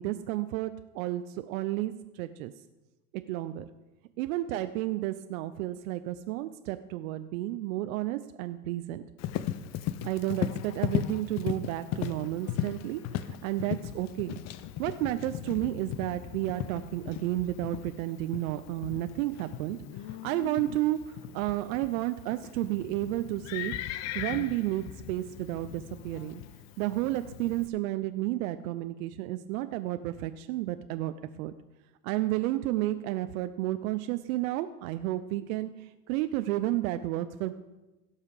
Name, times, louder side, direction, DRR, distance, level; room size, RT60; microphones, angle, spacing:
voice 1, 0.0-2.5 3.1-3.7 4.2-9.0 10.0-14.3 14.8-19.8 20.1-23.7 24.1-26.4 26.8-31.1 31.4-31.5 32.0-37.5, right 15 dB, 60° right, 10 dB, 0.7 m, -32 dB
Livestock farm animals working animals, 9.2-27.7, left 11 dB, 35° left, 0.6 m, -37 dB
17.0 x 5.7 x 4.9 m, 1.1 s
hypercardioid pair, 105°, 46 cm